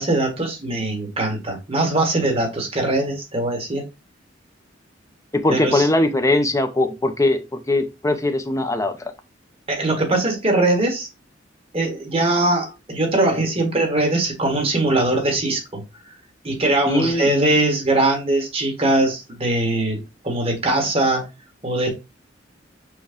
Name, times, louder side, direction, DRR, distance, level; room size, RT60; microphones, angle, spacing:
voice 1, 0.0-3.9 5.5-5.9 9.7-11.1 11.7-15.8 16.4-21.3 21.6-21.9, right 2 dB, 30° right, 1.6 m, -21 dB
voice 2, 5.3-9.0 16.9-17.3, left 2 dB, 15° left, 0.6 m, -20 dB
6.3 x 2.3 x 3.6 m
head